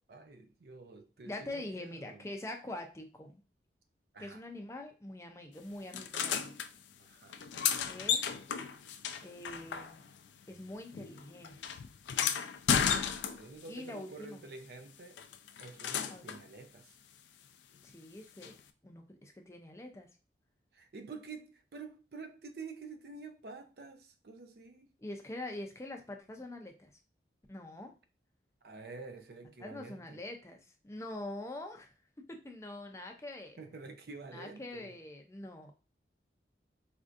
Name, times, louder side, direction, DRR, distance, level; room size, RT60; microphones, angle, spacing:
voice 1, 0.1-2.3 4.1-4.4 7.0-7.4 13.4-15.2 15.6-17.0 20.7-24.9 28.6-30.2 33.6-35.0, right 4 dB, 60° right, 0.5 m, -49 dB
voice 2, 1.2-3.4 4.2-6.5 7.9-8.3 9.2-10.0 10.5-11.5 13.7-14.4 16.1-16.3 17.8-18.6 18.8-20.1 25.0-26.9 27.5-27.9 29.6-30.6 30.8-33.6 34.3-35.7, left 1 dB, 15° left, 0.4 m, -44 dB
sound 1, 5.9-6.7 7.3-10.3 10.5-13.7 15.2-16.4 18.4-18.5, left 7 dB, 85° left, 0.4 m, -34 dB
4.3 x 2.6 x 2.4 m
head